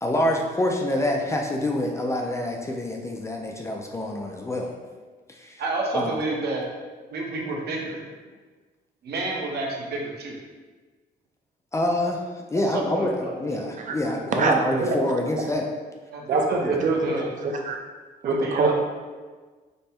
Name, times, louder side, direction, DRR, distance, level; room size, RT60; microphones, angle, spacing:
voice 1, 0.0-4.7 5.4-5.6 5.9-6.1 11.7-12.2 12.5-15.6 16.6-16.8, left 1 dB, 15° left, 1 dB, 0.4 m, -26 dB
voice 2, 5.6-6.7 7.1-8.1 9.0-10.4 12.6-13.4 15.4-15.5 16.1-17.3 18.2-18.7, right 2 dB, 70° right, -1 dB, 1.0 m, -30 dB
voice 3, 14.3-15.0 16.3-17.1 17.4-17.8 18.2-18.7, right 4 dB, 45° right, 2 dB, 0.6 m, -23 dB
5.3 x 2.1 x 4.3 m, 1.4 s
cardioid pair, 155°, 17 cm